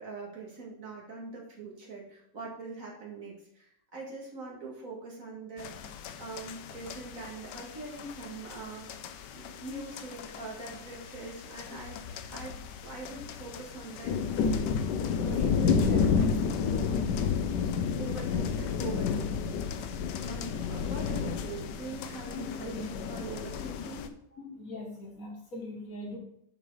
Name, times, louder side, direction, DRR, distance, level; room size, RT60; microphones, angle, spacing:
voice 1, 0.0-5.9 6.2-8.9 9.3-12.0 12.3-12.6 12.8-14.6 15.2-16.4 16.6-17.0 18.0-19.7 20.3-24.1, right 3 dB, 50° right, -2 dB, 2.4 m, -43 dB
sound 1, 5.6-24.1, left 6 dB, 80° left, 1.3 m, -32 dB
voice 2, 22.3-22.9 24.3-26.2, left 2 dB, 55° left, 0 dB, 2.0 m, -41 dB
7.3 x 4.9 x 5.6 m, 0.75 s
omnidirectional pair, 1.8 m